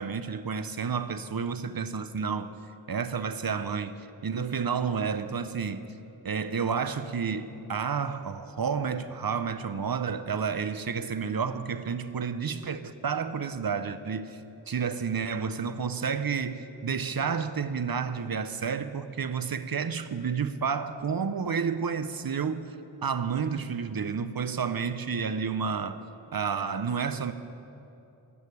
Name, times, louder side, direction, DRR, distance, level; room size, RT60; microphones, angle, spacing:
voice 1, 0.0-2.5 2.9-5.9 6.2-22.8 23.0-26.0 26.3-27.3, right 6 dB, 50° right, 0.6 m, -30 dB
12.5 x 6.5 x 9.7 m
wide cardioid pair, 55°, 46 cm